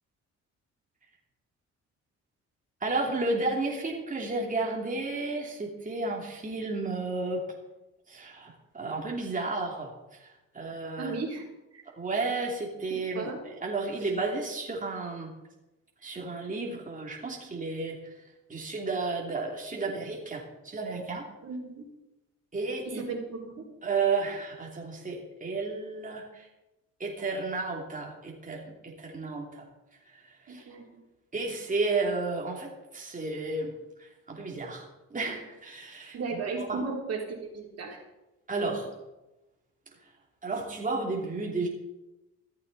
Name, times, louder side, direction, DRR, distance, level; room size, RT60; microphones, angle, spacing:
voice 1, 2.8-7.4 8.1-11.2 12.0-15.3 16.0-21.3 22.5-23.0 23.8-26.5 27.0-29.7 30.0-30.8 31.3-33.7 34.0-36.8 38.5-38.9 40.0-40.1 40.4-41.7, right 3 dB, 25° right, -1 dB, 3.0 m, -32 dB
voice 2, 11.0-11.4 11.7-11.8 13.2-13.4 21.4-21.8 22.9-23.7 30.5-31.0 36.1-38.0, right 4 dB, 55° right, 0 dB, 3.6 m, -35 dB
15.0 x 13.5 x 4.2 m, 1.0 s
cardioid pair, 90°, 30 cm